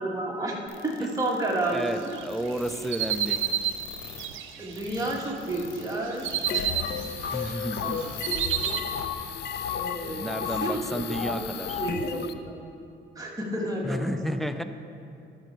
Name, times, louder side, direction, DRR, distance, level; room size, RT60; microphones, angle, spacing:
voice 1, 0.0-2.2 4.6-6.7 7.4-8.0 8.3-8.8 9.7-11.4 11.8-12.5 13.2-14.6, right 1 dB, 15° right, -3 dB, 1.8 m, -32 dB
sound 1, 0.7-6.8 7.1-7.2 7.7-7.8, left 7 dB, 80° left, 0.8 m, -45 dB
voice 2, 1.7-3.4 7.3-8.0 10.1-11.8 13.8-14.6, right 1 dB, ahead, 8 dB, 0.4 m, -32 dB
sound 2, 2.1-5.3 5.7-7.5 7.8-8.8, right 10 dB, 80° right, 0.6 m, -30 dB
sound 3, 6.5-12.3, left 7 dB, 60° left, 0.5 m, -33 dB
11.5 x 6.5 x 4.5 m, 2.6 s
cardioid pair, 90°, 20 cm